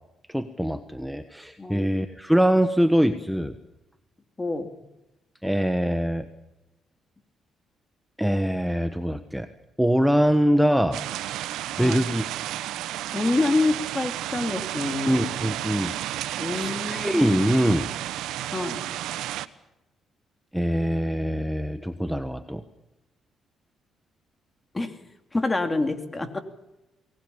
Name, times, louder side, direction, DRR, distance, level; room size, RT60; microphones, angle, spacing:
voice 1, 0.3-3.5 5.4-6.3 8.2-9.5 9.8-11.0 11.8-12.3 15.1-15.9 16.5-17.9 20.5-22.6, equal, ahead, 9 dB, 1.3 m, -23 dB
voice 2, 1.6-1.9 4.4-4.7 11.8-12.0 13.1-15.2 16.4-17.3 18.5-18.8 24.7-24.9 25.3-26.4, left 2 dB, 20° left, 8 dB, 2.9 m, -27 dB
sound 1, 10.9-19.5, right 13 dB, 90° right, 0.9 m, -32 dB
23.5 x 19.5 x 7.1 m, 0.96 s
cardioid pair, 90°, 0 cm